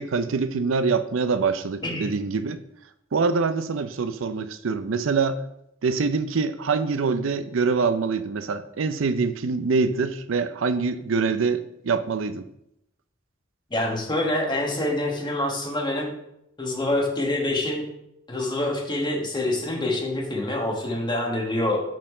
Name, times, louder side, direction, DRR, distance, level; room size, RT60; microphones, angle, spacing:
voice 1, 0.0-2.6 3.1-5.4 5.8-12.5, right 4 dB, 70° right, 11 dB, 0.5 m, -25 dB
voice 2, 13.7-16.1 16.6-17.9 18.3-21.8, left 1 dB, 25° left, 0 dB, 1.4 m, -26 dB
6.2 x 4.3 x 5.4 m, 0.80 s
head